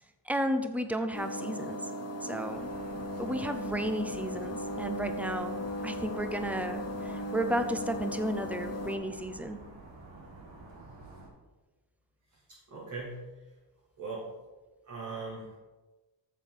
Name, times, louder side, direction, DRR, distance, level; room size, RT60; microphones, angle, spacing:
voice 1, 0.3-1.8 2.2-2.7 3.2-5.6 5.8-9.6, right 1 dB, 5° right, 9 dB, 0.5 m, -33 dB
sound 1, 1.1-9.0, left 1 dB, 35° left, 1.2 m, -37 dB
sound 2, 2.4-11.3, right 2 dB, 85° right, 2.3 m, -49 dB
voice 2, 12.7-13.2 14.0-14.3 14.9-15.6, right 3 dB, 45° right, -5 dB, 1.9 m, -39 dB
7.4 x 7.3 x 5.8 m, 1.2 s
wide cardioid pair, 155°, 43 cm